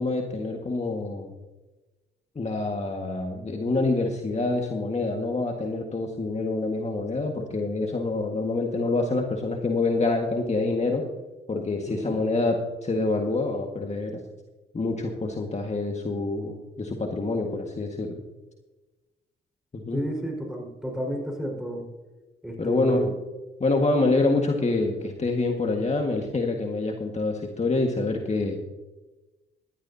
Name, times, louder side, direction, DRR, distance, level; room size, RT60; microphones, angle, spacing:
voice 1, 0.0-1.3 2.3-11.0 11.5-14.2 14.7-18.2 19.7-20.0 22.6-23.1 23.6-28.6, left 3 dB, 35° left, 2 dB, 1.7 m, -26 dB
voice 2, 11.9-12.2 19.9-21.9 22.4-23.1, equal, 5° right, 0 dB, 4.8 m, -31 dB
17.5 x 12.5 x 2.8 m, 1.1 s
supercardioid pair, 60°, 21 cm